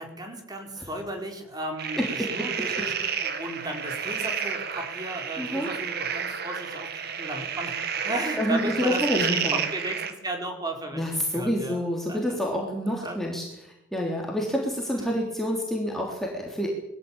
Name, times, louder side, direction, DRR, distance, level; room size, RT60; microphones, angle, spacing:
voice 1, 0.0-11.0 11.3-11.8 12.1-12.4 12.8-13.3 14.5-14.6 15.0-15.1, right 1 dB, 20° right, 3 dB, 4.4 m, -35 dB
sound 1, 1.8-10.1, right 7 dB, 55° right, 2.3 m, -31 dB
voice 2, 2.0-2.5 5.4-5.7 8.4-9.6 10.9-16.7, equal, ahead, -2 dB, 3.5 m, -28 dB
21.5 x 15.0 x 8.9 m, 0.81 s
head